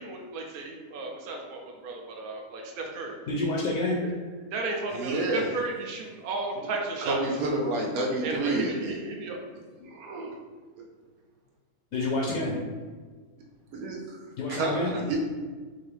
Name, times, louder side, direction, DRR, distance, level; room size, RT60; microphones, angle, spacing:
voice 1, 0.0-3.2 4.5-7.2 8.2-9.4 9.9-10.3, right 3 dB, 55° right, 1 dB, 0.6 m, -34 dB
voice 2, 3.3-4.0 6.6-6.7 8.6-8.7 9.8-9.9 11.9-12.5 14.4-14.9, left 2 dB, 75° left, -3 dB, 1.1 m, -28 dB
voice 3, 4.9-5.5 7.0-9.1 13.7-14.2 14.5-15.2, right 2 dB, 85° right, -2 dB, 1.1 m, -29 dB
3.8 x 2.6 x 3.3 m, 1.4 s
omnidirectional pair, 1.5 m